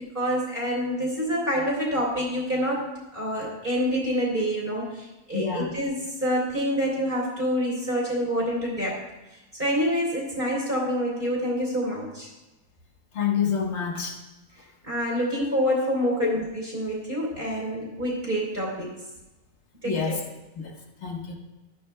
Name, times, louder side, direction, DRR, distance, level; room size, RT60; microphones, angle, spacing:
voice 1, 0.1-2.8 3.1-9.0 9.5-12.3 14.8-18.9 19.8-20.2, equal, 35° right, -4 dB, 3.4 m, -27 dB
voice 2, 5.3-5.7 13.1-14.2 16.2-16.3 19.8-20.2 20.5-21.4, left 7 dB, 50° left, 2 dB, 1.6 m, -27 dB
13.0 x 11.0 x 2.3 m, 1.0 s
omnidirectional pair, 1.5 m